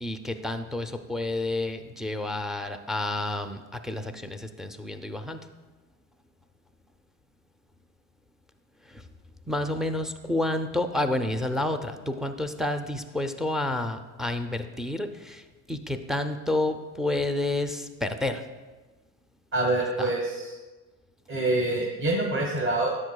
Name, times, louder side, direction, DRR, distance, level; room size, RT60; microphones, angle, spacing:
voice 1, 0.0-5.4 8.9-9.0 9.5-18.4, left 2 dB, ahead, 7 dB, 0.4 m, -30 dB
voice 2, 19.5-20.6 21.3-23.0, right 2 dB, 30° right, -1 dB, 1.4 m, -26 dB
10.5 x 7.9 x 2.2 m, 1.2 s
hypercardioid pair, 80°, 44 cm